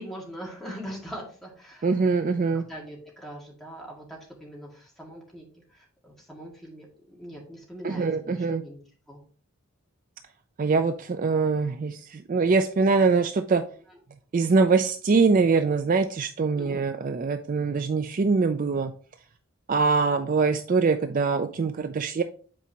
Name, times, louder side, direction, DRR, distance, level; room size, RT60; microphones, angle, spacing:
voice 1, 0.0-2.0 2.5-5.5 5.7-8.8 9.1-9.2 16.5-16.9, equal, ahead, -3 dB, 2.0 m, -42 dB
voice 2, 1.8-2.6 7.8-8.6 10.6-13.6 14.3-18.9 19.7-22.2, right 4 dB, 40° right, 8 dB, 0.3 m, -23 dB
8.4 x 4.5 x 2.9 m, 0.43 s
head